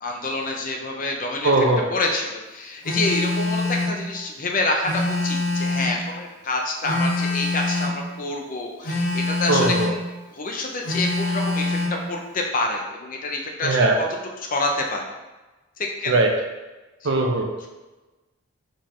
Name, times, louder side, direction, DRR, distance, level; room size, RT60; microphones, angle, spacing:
voice 1, 0.0-9.7 10.3-11.8 12.1-14.1 14.4-15.1 15.8-16.2 17.0-17.3 17.6-17.7, left 2 dB, 40° left, 1 dB, 0.6 m, -27 dB
voice 2, 1.4-1.9 9.5-9.9 13.6-14.0 16.1-16.3 17.0-17.5, right 2 dB, 55° right, 3 dB, 0.5 m, -19 dB
Telephone, 2.8-4.0 4.8-6.0 6.8-8.0 8.8-10.0 10.8-12.0, left 2 dB, 55° left, 1.4 m, -24 dB
4.4 x 3.7 x 3.1 m, 1.1 s
head